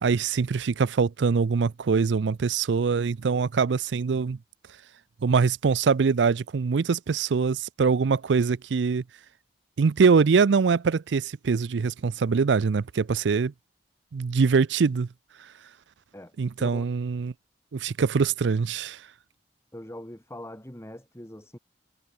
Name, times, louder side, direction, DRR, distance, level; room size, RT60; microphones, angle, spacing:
voice 1, 0.0-4.4 5.2-9.0 9.8-13.5 14.1-15.1 16.4-17.3 17.7-19.0, right 5 dB, 80° right, 0.5 m, -23 dB
voice 2, 16.1-16.9 19.7-21.6, left 1 dB, 15° left, 3.5 m, -42 dB
head